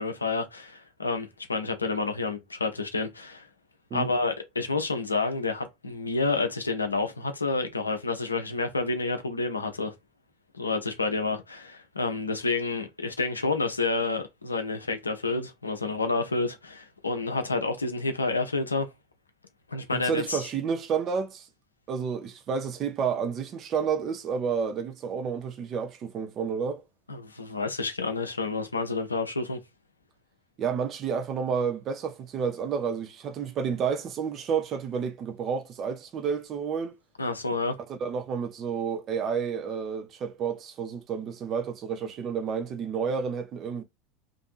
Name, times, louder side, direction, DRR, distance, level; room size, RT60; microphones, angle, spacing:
voice 1, 0.0-3.4 3.9-9.9 10.5-18.9 19.7-20.4 27.1-29.6 37.2-37.8, left 3 dB, 90° left, 0.5 m, -29 dB
voice 2, 19.9-21.5 21.9-26.8 30.6-36.9 37.9-43.8, right 6 dB, 40° right, 0.5 m, -30 dB
2.6 x 2.6 x 2.4 m
figure-of-eight pair, 80°, 0 cm